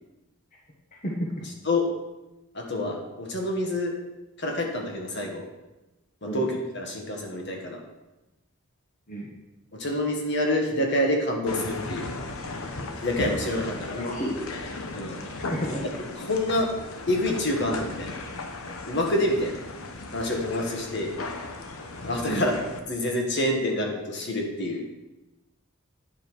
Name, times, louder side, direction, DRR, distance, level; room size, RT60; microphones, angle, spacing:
voice 1, 2.5-4.0 4.4-5.4 6.2-7.8 9.7-12.1 13.0-14.1 15.0-15.2 15.6-15.7 16.2-16.7 17.1-18.2 18.9-19.6 20.1-21.1 22.0-22.5 22.9-24.8, left 1 dB, 55° left, 1 dB, 1.6 m, -27 dB
sound 1, 11.5-22.8, left 2 dB, 85° left, 0.9 m, -36 dB
voice 2, 13.9-14.5 15.5-15.8 22.2-22.4, right 1 dB, 40° left, -3 dB, 1.2 m, -31 dB
9.6 x 5.2 x 6.2 m, 1.1 s
head